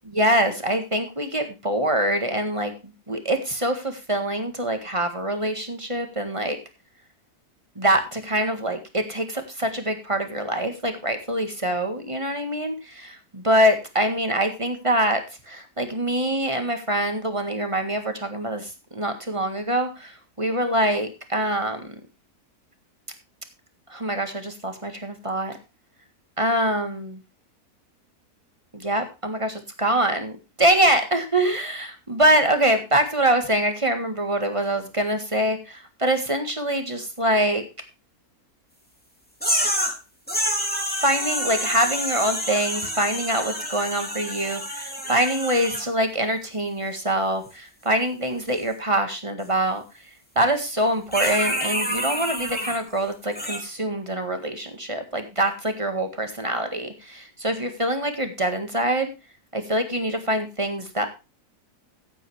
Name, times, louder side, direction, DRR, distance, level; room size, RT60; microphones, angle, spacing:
voice 1, 0.1-6.6 7.8-21.9 23.9-25.6 26.4-27.2 28.7-30.3 30.6-37.6 41.0-49.8 50.4-59.1 59.5-61.1, right 1 dB, 20° right, 6 dB, 1.7 m, -24 dB
sound 1, 39.4-40.0 40.3-45.9 51.1-52.8 53.3-53.6, equal, 5° left, 2.7 m, -27 dB
14.5 x 8.6 x 3.3 m, 0.28 s
omnidirectional pair, 1.6 m